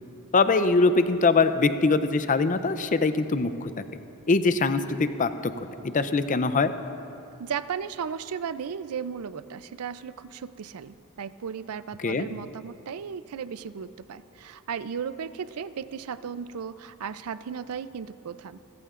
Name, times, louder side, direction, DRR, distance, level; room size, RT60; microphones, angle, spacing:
voice 1, 0.3-3.7 4.3-5.5 5.8-6.7 12.0-12.3, left 3 dB, 35° left, 10 dB, 0.5 m, -22 dB
voice 2, 7.4-18.6, right 7 dB, 75° right, 14 dB, 0.4 m, -35 dB
29.5 x 14.5 x 2.5 m, 2.8 s
head